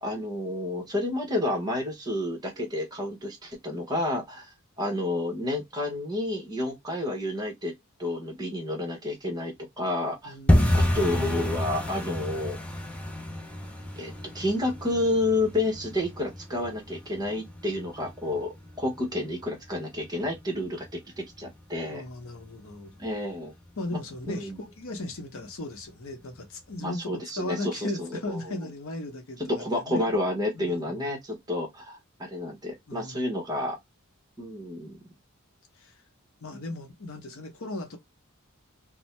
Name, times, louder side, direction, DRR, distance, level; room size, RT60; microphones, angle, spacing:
voice 1, 0.0-4.5 4.8-7.7 8.0-10.3 10.7-12.6 14.0-18.5 18.8-22.0 23.0-23.5 23.9-24.0 24.3-24.6 26.8-28.2 28.5-28.6 29.5-33.8 34.4-35.0, left 1 dB, 20° right, 0.9 m, -30 dB
voice 2, 10.2-11.0 21.9-23.0 23.8-27.1 27.4-30.1 30.5-31.1 32.9-33.3 35.8-36.0 36.4-38.0, left 2 dB, 65° left, 0.7 m, -37 dB
sound 1, 10.5-21.2 21.5-22.2 22.4-22.7 23.0-23.4 23.7-23.8 24.3-24.8 25.1-25.2 25.7-25.8, left 1 dB, 5° left, 0.5 m, -30 dB
2.6 x 2.1 x 3.1 m
head